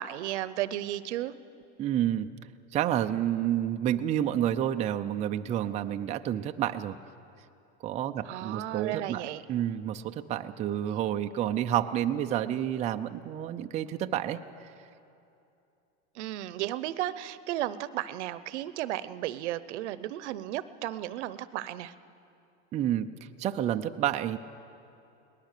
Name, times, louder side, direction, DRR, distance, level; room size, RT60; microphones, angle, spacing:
voice 1, 0.0-1.3 8.2-9.4 10.8-11.0 16.1-21.9, right 14 dB, 85° right, 15 dB, 0.8 m, -34 dB
voice 2, 1.8-2.3 2.7-7.0 7.8-9.2 9.5-14.4 22.7-23.1 23.4-24.4, right 11 dB, 20° right, 6 dB, 0.4 m, -29 dB
22.5 x 19.5 x 6.6 m, 2.7 s
supercardioid pair, 145°, 34 cm